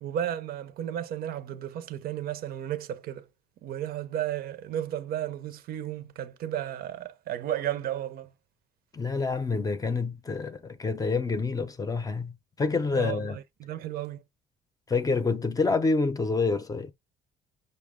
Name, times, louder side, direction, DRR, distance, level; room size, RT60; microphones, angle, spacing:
voice 1, 0.0-3.2 3.6-8.3 13.0-14.2, right 11 dB, 60° right, 0.6 m, -33 dB
voice 2, 8.9-13.4 14.9-16.9, left 4 dB, 20° left, 0.6 m, -27 dB
5.7 x 2.1 x 3.5 m
cardioid pair, 110°, 17 cm